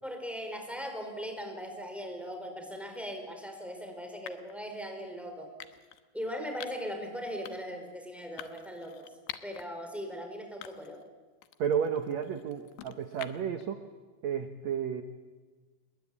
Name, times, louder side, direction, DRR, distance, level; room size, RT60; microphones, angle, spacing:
voice 1, 0.0-5.5 6.1-9.1 9.4-11.0, equal, ahead, 4 dB, 4.3 m, -39 dB
sound 1, 3.0-3.2 4.3-4.6 5.6-6.0 6.6-6.9 7.4-7.8 8.4-9.7 10.1-10.2 10.6-11.1 11.4-13.6, left 13 dB, 90° left, 3.3 m, -47 dB
voice 2, 11.6-13.8 14.2-15.0, right 8 dB, 70° right, 8 dB, 1.7 m, -32 dB
29.0 x 21.5 x 8.6 m, 1.4 s
omnidirectional pair, 4.7 m